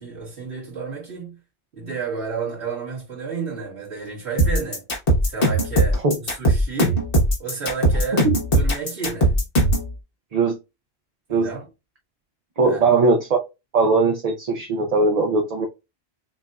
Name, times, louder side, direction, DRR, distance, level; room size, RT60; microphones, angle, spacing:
voice 1, 0.0-1.4 1.7-4.8 5.2-7.0 7.4-8.3 8.5-9.4 11.3-11.7 12.6-12.9, right 5 dB, 80° right, 2.2 m, -31 dB
sound 1, 4.4-9.9, right 1 dB, 60° left, 1.5 m, -19 dB
voice 2, 12.6-13.4 13.7-15.7, right 3 dB, 40° right, 0.7 m, -19 dB
6.2 x 2.6 x 2.3 m
omnidirectional pair, 1.1 m